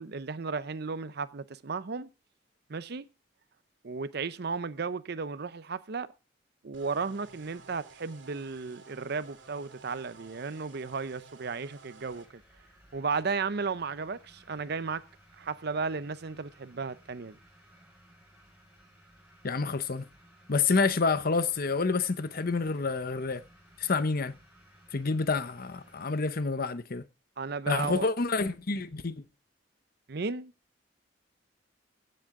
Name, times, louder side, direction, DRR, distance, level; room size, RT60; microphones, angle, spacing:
voice 1, 0.0-2.1 2.7-3.1 3.8-6.1 6.6-12.3 12.9-15.0 15.4-17.4 27.4-28.1 30.1-30.5, right 4 dB, 60° right, 0.7 m, -34 dB
sound 1, 6.7-12.3, right 4 dB, 80° right, 2.5 m, -53 dB
sound 2, 12.0-26.3, equal, 5° right, 5.8 m, -59 dB
voice 2, 19.4-20.1 20.5-23.4 23.8-24.4 24.9-27.1 27.7-29.2, left 4 dB, 55° left, 0.8 m, -28 dB
16.0 x 7.8 x 3.7 m
head